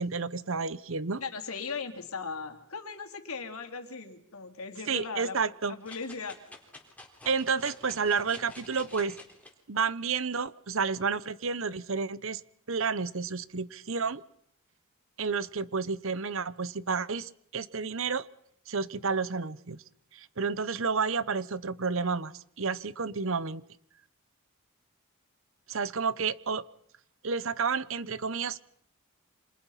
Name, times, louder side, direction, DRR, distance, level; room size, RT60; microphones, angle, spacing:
voice 1, 0.0-1.2 4.9-5.7 7.2-9.2 9.7-12.4 12.7-14.2 15.2-18.3 18.7-19.8 20.1-23.6 25.7-26.7 27.2-28.6, right 5 dB, 65° right, 17 dB, 0.9 m, -30 dB
voice 2, 1.2-5.4 5.7-6.4, left 5 dB, 80° left, 5 dB, 3.3 m, -38 dB
sound 1, 5.8-9.5 10.1-10.2, left 2 dB, 5° left, 4.0 m, -49 dB
29.0 x 26.5 x 5.8 m, 0.69 s
head